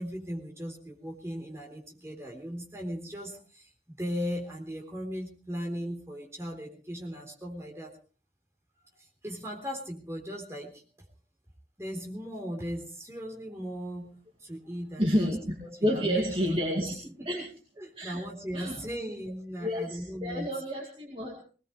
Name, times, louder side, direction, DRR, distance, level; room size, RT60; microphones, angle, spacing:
voice 1, 0.0-7.9 9.0-10.8 11.8-17.5 17.8-20.5, equal, 15° right, -1 dB, 3.7 m, -38 dB
voice 2, 15.0-16.9 17.3-17.4 18.0-18.2 18.5-18.9 19.6-21.4, equal, 30° right, -1 dB, 2.4 m, -30 dB
21.0 x 18.5 x 3.3 m, 0.37 s
head